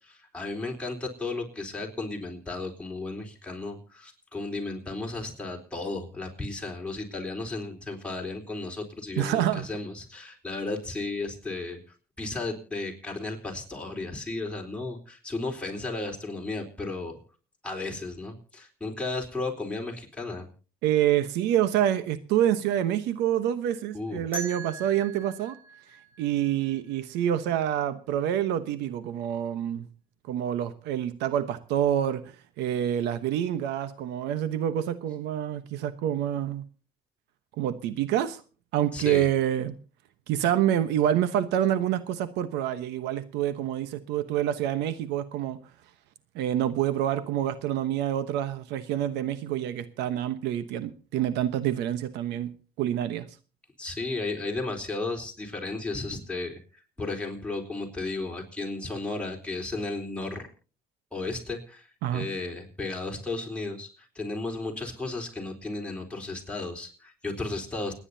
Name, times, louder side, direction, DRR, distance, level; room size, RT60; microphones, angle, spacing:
voice 1, 0.0-11.8 12.2-17.2 17.6-20.5 23.9-24.2 38.9-39.3 53.8-60.5 61.1-63.9 64.1-67.9, left 3 dB, 5° left, 0 dB, 3.9 m, -34 dB
voice 2, 9.2-9.7 20.8-25.5 26.2-29.9 30.3-36.6 37.6-38.4 38.7-39.7 40.3-45.6 46.3-53.3 62.0-62.3, right 11 dB, 90° right, 13 dB, 1.1 m, -27 dB
sound 1, 24.3-27.2, right 3 dB, 10° right, 6.8 m, -41 dB
29.0 x 9.8 x 2.8 m, 0.36 s
cardioid pair, 110°, 17 cm